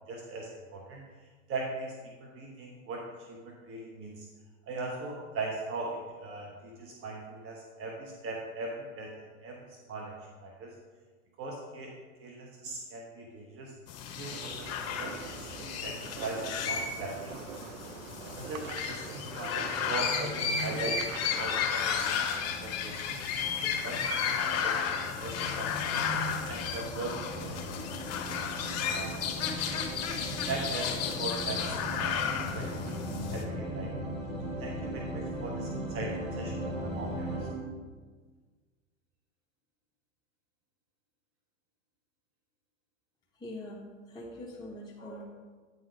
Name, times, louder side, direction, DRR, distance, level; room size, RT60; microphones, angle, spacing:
voice 1, 0.1-1.0 1.5-1.9 2.2-4.3 4.7-10.1 10.4-10.7 11.4-11.9 12.2-13.7 14.2-14.7 15.0-17.3 18.2-23.2 23.5-26.0 26.5-27.7 28.8-29.2 30.5-33.9 34.4-37.5, right 3 dB, 35° right, -1 dB, 1.1 m, -40 dB
sound 1, 13.9-33.4, left 7 dB, 40° left, 1.1 m, -33 dB
sound 2, 14.3-21.6, right 7 dB, 75° right, 0.6 m, -44 dB
sound 3, 18.0-37.5, right 1 dB, 15° right, 2.2 m, -40 dB
voice 2, 43.3-45.2, left 1 dB, 10° left, -5 dB, 1.0 m, -43 dB
9.3 x 4.0 x 5.0 m, 1.4 s
hypercardioid pair, 100°, 39 cm